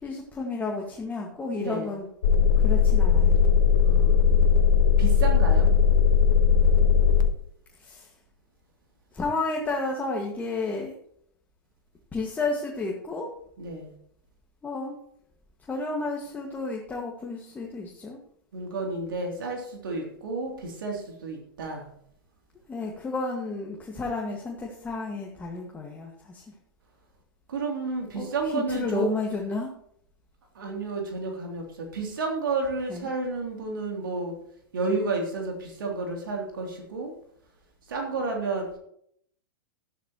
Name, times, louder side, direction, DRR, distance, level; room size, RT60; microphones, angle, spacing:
voice 1, 0.0-2.1 2.6-3.4 7.8-8.1 9.1-11.0 12.1-13.3 14.6-15.0 15.7-18.2 22.7-26.4 28.1-28.3 28.5-29.7 32.9-33.0, left 3 dB, 15° left, -1 dB, 2.0 m, -31 dB
voice 2, 1.6-1.9 3.8-4.7 5.0-5.7 13.6-13.9 18.5-21.9 27.5-29.1 30.5-34.3 34.7-37.1 37.9-38.8, right 3 dB, 70° right, 1 dB, 3.2 m, -31 dB
sound 1, 2.2-7.3, left 7 dB, 65° left, 1.2 m, -19 dB
13.5 x 11.5 x 3.1 m, 0.67 s
figure-of-eight pair, 105°, 12 cm